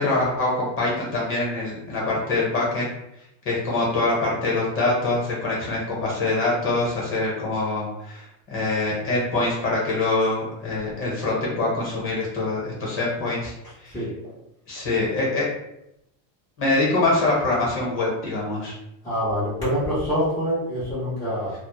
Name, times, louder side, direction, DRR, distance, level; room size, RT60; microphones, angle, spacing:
voice 1, 0.0-2.9 3.4-13.5 13.8-14.0 14.7-15.5 16.6-18.7, left 2 dB, 30° left, -4 dB, 0.8 m, -24 dB
voice 2, 19.0-21.5, equal, 10° left, -12 dB, 0.4 m, -25 dB
2.1 x 2.0 x 3.0 m, 0.84 s
cardioid pair, 165°, 44 cm